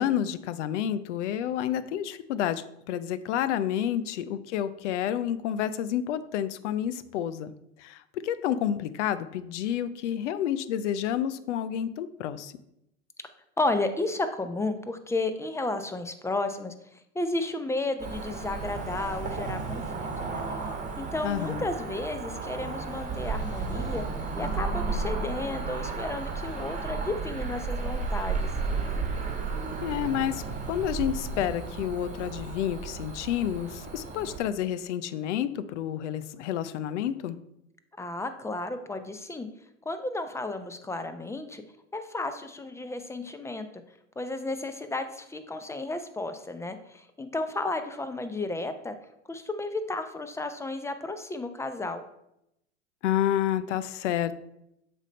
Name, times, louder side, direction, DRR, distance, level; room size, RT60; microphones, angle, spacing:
voice 1, 0.0-7.5 7.8-12.5 21.2-21.6 29.8-37.4 53.0-54.4, left 10 dB, 75° left, 15 dB, 0.6 m, -29 dB
voice 2, 13.6-16.7 17.1-20.4 21.0-24.0 24.4-28.5 38.0-39.5 39.9-41.6 41.9-43.7 44.2-49.0 49.3-52.0, left 2 dB, 10° left, 9 dB, 0.6 m, -33 dB
Cricket / Motor vehicle (road), 18.0-34.4, right 4 dB, 20° right, 1.5 m, -33 dB
7.3 x 3.4 x 5.2 m, 0.82 s
hypercardioid pair, 85°, 36 cm